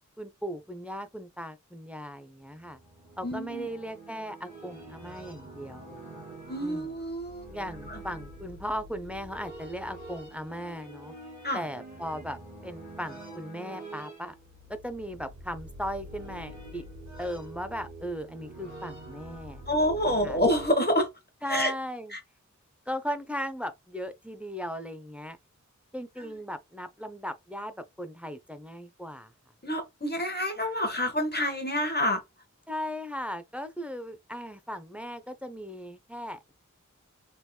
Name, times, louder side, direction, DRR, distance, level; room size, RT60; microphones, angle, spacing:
voice 1, 0.2-2.8 3.2-6.0 6.6-6.9 7.5-11.1 11.5-14.3 14.7-16.8 17.2-19.8 20.1-20.4 21.4-22.1 22.9-25.4 25.9-29.3 32.7-36.5, equal, 5° right, 0.6 m, -37 dB
sound 1, 2.5-20.7, right 1 dB, 65° right, 1.4 m, -46 dB
voice 2, 3.2-3.7 6.5-7.5 7.9-8.0 11.4-11.6 19.7-21.1 21.5-21.7 22.1-22.2 29.6-32.2, equal, 35° left, 1.0 m, -27 dB
3.6 x 2.9 x 2.2 m
wide cardioid pair, 50°, 31 cm